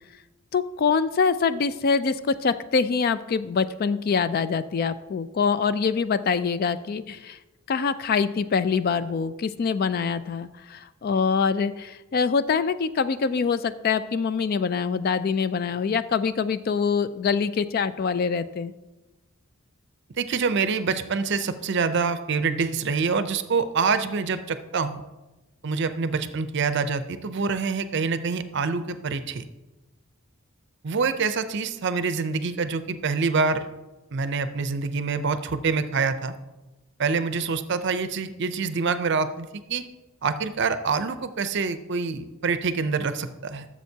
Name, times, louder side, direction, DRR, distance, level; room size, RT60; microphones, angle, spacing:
voice 1, 0.5-7.4 7.7-18.7, left 5 dB, 45° left, 14 dB, 0.3 m, -24 dB
voice 2, 20.2-25.0 25.6-29.5 30.8-33.7 34.1-36.3 37.0-39.8 40.2-43.7, right 5 dB, 55° right, 11 dB, 0.5 m, -26 dB
15.0 x 7.3 x 2.8 m, 1.1 s
head